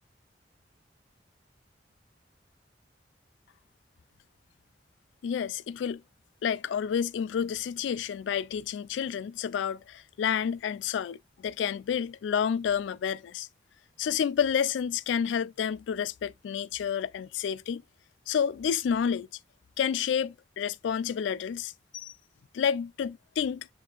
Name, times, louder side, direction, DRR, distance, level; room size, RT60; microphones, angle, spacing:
voice 1, 5.2-6.0 6.4-13.5 14.0-17.8 18.3-19.3 19.8-22.1 22.5-23.7, left 7 dB, 85° left, 0.3 m, -30 dB
7.2 x 2.6 x 2.4 m
head